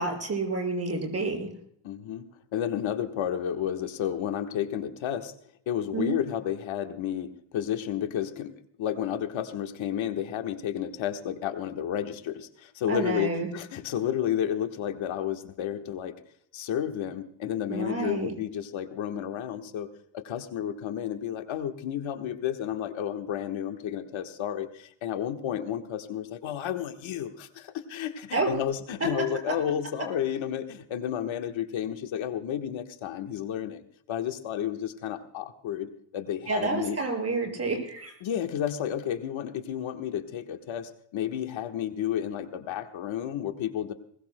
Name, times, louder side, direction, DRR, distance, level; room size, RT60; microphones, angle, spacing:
voice 1, 0.0-1.5 5.9-6.2 12.9-13.5 17.7-18.3 28.3-28.5 36.5-38.1, right 3 dB, 30° right, 2 dB, 6.0 m, -29 dB
voice 2, 1.8-5.3 5.7-16.1 16.5-33.8 34.1-37.0 38.2-43.9, left 10 dB, 80° left, 6 dB, 1.4 m, -31 dB
21.5 x 20.0 x 2.2 m, 0.67 s
cardioid pair, 125°, 46 cm